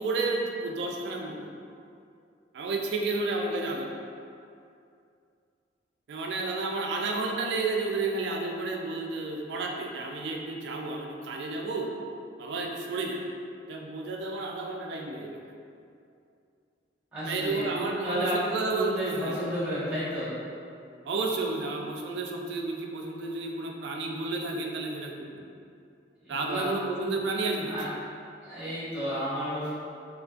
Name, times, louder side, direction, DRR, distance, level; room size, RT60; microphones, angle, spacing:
voice 1, 0.0-1.5 2.5-3.9 6.1-11.9 12.4-13.2 13.7-15.4 17.2-19.4 21.0-25.4 26.3-27.7, right 3 dB, 70° right, 1 dB, 0.3 m, -31 dB
voice 2, 17.1-20.3 26.2-26.6 27.7-27.9 28.4-29.7, equal, 5° right, -13 dB, 1.1 m, -32 dB
3.6 x 2.4 x 2.3 m, 2.5 s
head